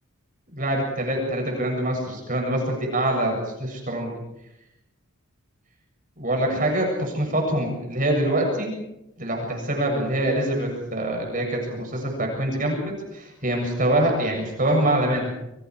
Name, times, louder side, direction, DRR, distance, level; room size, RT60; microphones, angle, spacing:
voice 1, 0.5-4.1 6.2-8.7 9.2-15.3, right 1 dB, 35° right, 1 dB, 7.2 m, -24 dB
28.5 x 25.5 x 4.9 m, 0.90 s
head